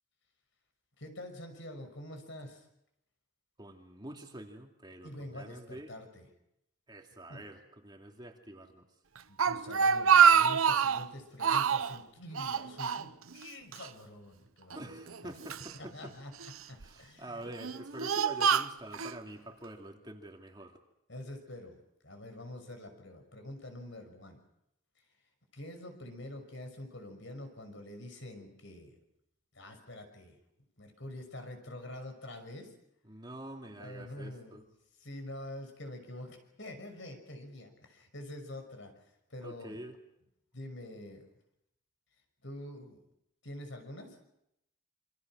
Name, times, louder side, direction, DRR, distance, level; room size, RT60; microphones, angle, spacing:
voice 1, 1.0-2.7 5.0-6.3 7.3-7.4 9.3-14.9 15.2-15.3 15.8-16.3 16.6-17.4 21.1-21.8 22.0-24.4 25.5-29.0 29.5-30.4 30.8-32.7 33.7-34.6 35.0-38.9 39.3-39.8 40.5-41.3 42.4-43.0 43.4-44.2, left 1 dB, 60° left, 6 dB, 6.1 m, -46 dB
voice 2, 3.6-5.9 6.9-8.9 14.7-16.1 16.8-20.8 33.1-34.6 39.4-40.0, right 1 dB, 20° right, 2 dB, 2.5 m, -46 dB
Speech, 9.2-11.1 11.4-12.0 12.4-13.5 13.7-13.9 14.7-15.7 16.4-16.8 17.5-19.2, right 7 dB, 85° right, 0.9 m, -26 dB
28.0 x 26.0 x 6.3 m, 0.80 s
head